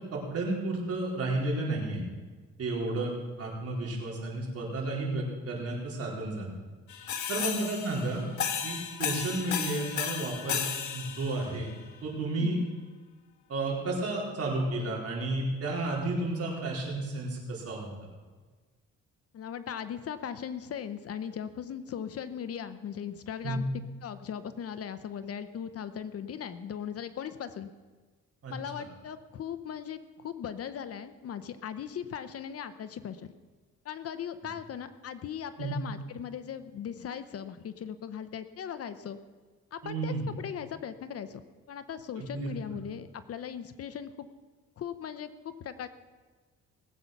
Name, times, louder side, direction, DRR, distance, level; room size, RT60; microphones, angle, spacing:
voice 1, 0.1-2.0 2.6-3.1 3.4-6.5 7.3-8.2 8.6-10.6 10.9-11.7 12.0-12.6 13.5-17.9 23.4-23.6 28.4-28.5 35.6-35.8 39.8-40.2 42.2-42.5, right 2 dB, 50° right, -2 dB, 4.1 m, -32 dB
sound 1, 6.9-11.7, left 8 dB, 70° left, 1.6 m, -34 dB
voice 2, 7.4-7.7 12.4-12.7 19.3-23.7 24.0-27.7 28.5-33.3 33.8-39.2 39.7-41.4 41.7-44.3 44.8-45.9, left 8 dB, 50° left, 12 dB, 0.8 m, -38 dB
19.0 x 8.3 x 5.9 m, 1.4 s
cardioid pair, 120°, 30 cm